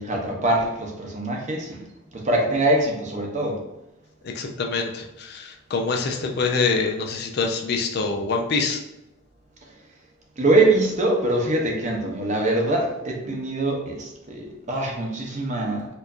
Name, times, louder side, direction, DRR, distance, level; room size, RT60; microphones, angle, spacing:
voice 1, 0.0-1.8 2.1-3.6 10.4-15.9, right 2 dB, 35° right, 0 dB, 0.6 m, -23 dB
voice 2, 4.4-8.8, left 4 dB, 50° left, 3 dB, 0.4 m, -25 dB
4.4 x 2.5 x 2.5 m, 0.93 s
head